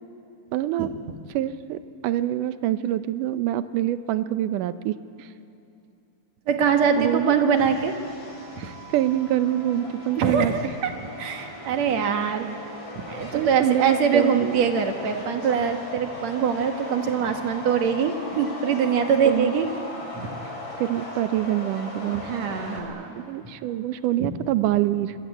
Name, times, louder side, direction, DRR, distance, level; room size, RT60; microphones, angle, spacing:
voice 1, 0.5-0.9 1.3-5.3 7.0-7.4 8.6-10.5 13.3-14.7 19.2-19.5 20.8-22.2 23.2-25.2, right 13 dB, 90° right, 12 dB, 2.4 m, -25 dB
voice 2, 6.5-7.9 8.6-8.7 10.2-10.9 11.2-12.5 13.0-19.7 20.1-20.4 22.1-23.2 23.4-23.5 24.2-24.3, right 6 dB, 65° right, 5 dB, 2.6 m, -23 dB
Subway metro underground, 6.7-22.8, left 1 dB, 50° left, 6.2 m, -38 dB
26.0 x 25.0 x 9.0 m, 2.7 s
omnidirectional pair, 3.6 m